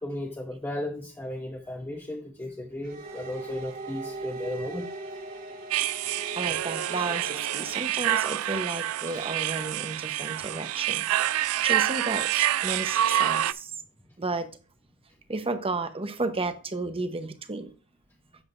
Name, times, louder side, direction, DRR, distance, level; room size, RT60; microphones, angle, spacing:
voice 1, 0.0-4.9 9.1-9.2, left 1 dB, 10° left, 1 dB, 0.9 m, -35 dB
sound 1, 2.8-7.8, right 2 dB, 45° right, 2.2 m, -39 dB
sound 2, 5.7-13.5, right 12 dB, 80° right, 0.4 m, -27 dB
voice 2, 6.1-13.7 14.2-14.5 15.3-17.7, right 3 dB, 25° right, 9 dB, 0.9 m, -33 dB
9.7 x 7.3 x 2.5 m, 0.37 s
head